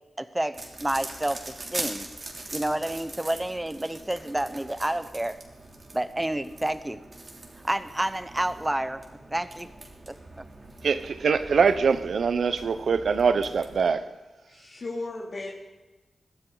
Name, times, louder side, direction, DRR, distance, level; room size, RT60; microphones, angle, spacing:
voice 1, 0.2-2.1 2.5-5.4 5.9-7.0 7.6-9.7 10.1-10.2, right 1 dB, 15° right, 1.0 m, -29 dB
sound 1, 0.5-13.9, right 2 dB, 45° right, 3.2 m, -42 dB
voice 2, 10.8-14.0, right 5 dB, 80° right, 0.8 m, -23 dB
voice 3, 14.5-15.5, left 2 dB, 60° left, 3.0 m, -36 dB
22.0 x 14.5 x 4.0 m
cardioid pair, 70°, 0 cm